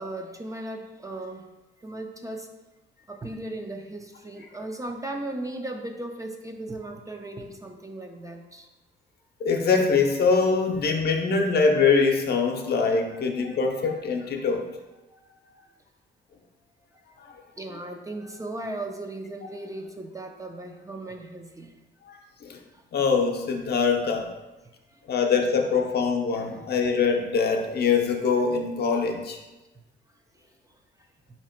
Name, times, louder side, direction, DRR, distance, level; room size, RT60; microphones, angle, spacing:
voice 1, 0.0-1.4 1.8-2.5 3.1-8.7 12.6-13.4 17.6-21.7 26.5-26.7, right 2 dB, 15° right, 3 dB, 0.4 m, -37 dB
voice 2, 9.4-14.7 22.1-22.6 22.9-24.3 25.1-29.4, left 5 dB, 55° left, 3 dB, 0.7 m, -23 dB
4.0 x 2.9 x 4.3 m, 1.1 s
cardioid pair, 90°, 20 cm